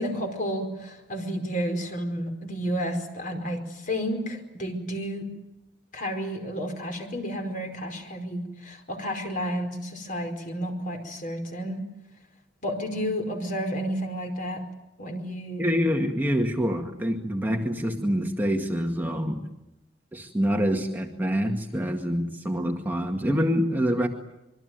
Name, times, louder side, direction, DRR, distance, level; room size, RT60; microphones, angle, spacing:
voice 1, 0.0-5.3 5.9-11.8 12.6-14.6 15.0-15.7, equal, 45° left, 5 dB, 4.9 m, -31 dB
voice 2, 15.6-19.4 20.1-24.1, equal, 10° right, 2 dB, 1.9 m, -26 dB
26.0 x 23.5 x 9.3 m, 0.92 s
head